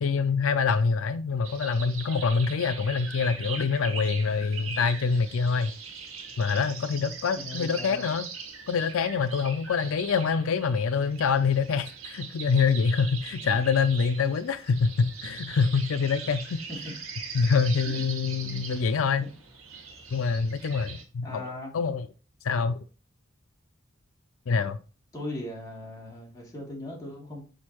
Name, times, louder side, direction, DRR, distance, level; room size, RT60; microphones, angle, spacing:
voice 1, 0.0-5.7 6.4-8.3 8.7-16.6 17.3-19.3 20.1-22.1 22.4-22.8 24.5-24.8, left 5 dB, 80° left, 0.4 m, -25 dB
sound 1, 1.4-21.0, right 5 dB, 85° right, 1.7 m, -41 dB
voice 2, 7.3-8.1 16.7-16.9 17.8-18.0 18.4-18.6 21.2-21.7 25.1-27.4, left 2 dB, 15° left, 2.8 m, -38 dB
6.4 x 5.2 x 3.0 m
head